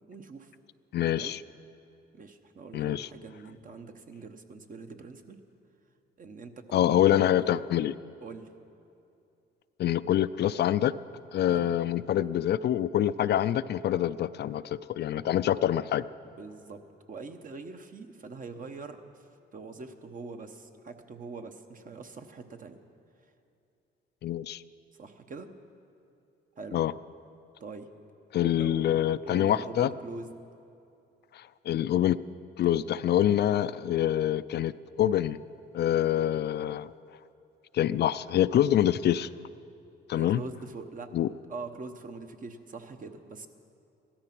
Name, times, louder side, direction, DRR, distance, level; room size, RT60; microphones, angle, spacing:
voice 1, 0.1-0.5 1.2-1.3 2.1-5.4 6.2-7.6 8.2-8.5 11.5-11.7 16.2-16.8 17.1-19.3 19.5-22.8 24.9-25.5 26.6-26.8 27.6-27.9 28.5-30.3 40.1-41.1 41.5-43.5, right 4 dB, 45° right, 7 dB, 1.1 m, -43 dB
voice 2, 0.9-1.4 2.7-3.1 6.7-7.9 9.8-10.9 11.3-16.0 24.2-24.6 26.7-26.9 28.3-29.9 31.3-32.2 32.6-35.4 35.7-36.9 37.7-39.3 40.1-40.4 41.1-41.3, left 11 dB, 60° left, 14 dB, 0.4 m, -26 dB
16.0 x 13.0 x 6.0 m, 2.7 s
cardioid pair, 90°, 20 cm